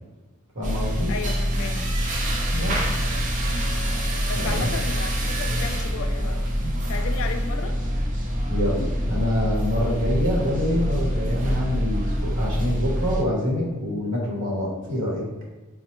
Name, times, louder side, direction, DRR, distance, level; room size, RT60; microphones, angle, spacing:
voice 1, 0.5-1.1 2.5-2.9 4.3-4.7 8.5-15.2, left 1 dB, 60° right, -3 dB, 0.9 m, -26 dB
sound 1, 0.6-13.2, equal, 35° right, 0.4 m, -25 dB
sound 2, 0.9-6.3, equal, 20° left, 0.7 m, -39 dB
voice 2, 1.1-1.7 4.3-6.5 6.9-7.8, left 5 dB, 65° left, 6 dB, 0.3 m, -33 dB
4.1 x 2.1 x 2.9 m, 1.2 s
head